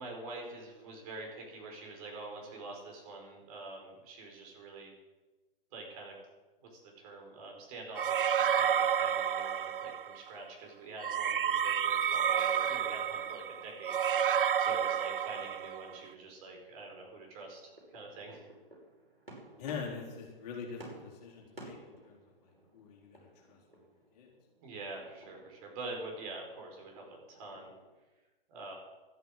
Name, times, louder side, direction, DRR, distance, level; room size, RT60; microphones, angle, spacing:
voice 1, 0.0-4.9 5.7-6.2 6.6-18.5 24.6-27.7 28.5-28.7, right 2 dB, 40° right, 1 dB, 4.7 m, -46 dB
sound 1, 8.0-10.2 11.0-15.9, right 8 dB, 65° right, 0.6 m, -30 dB
sound 2, 11.7-27.9, right 1 dB, 85° right, 5.6 m, -57 dB
voice 2, 19.6-23.6 24.1-24.3, left 5 dB, 40° left, -2 dB, 4.0 m, -44 dB
13.5 x 9.1 x 8.1 m, 1.2 s
figure-of-eight pair, 115°, 29 cm